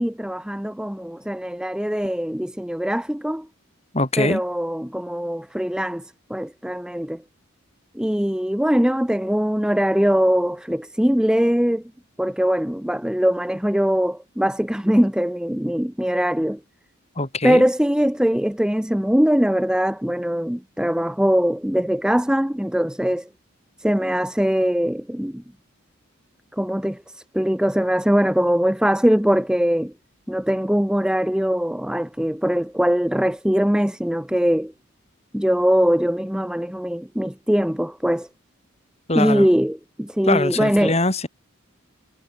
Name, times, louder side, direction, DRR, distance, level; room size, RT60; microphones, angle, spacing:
voice 1, 0.0-3.5 4.2-6.0 6.3-7.2 8.0-11.8 12.2-16.6 17.4-23.3 23.8-25.4 26.5-29.9 30.3-34.7 35.3-38.3 39.1-41.0, equal, 5° right, 0.6 m, -21 dB
voice 2, 3.9-4.4 17.2-17.6 39.1-39.5 40.3-41.3, left 2 dB, 30° left, 4.3 m, -22 dB
head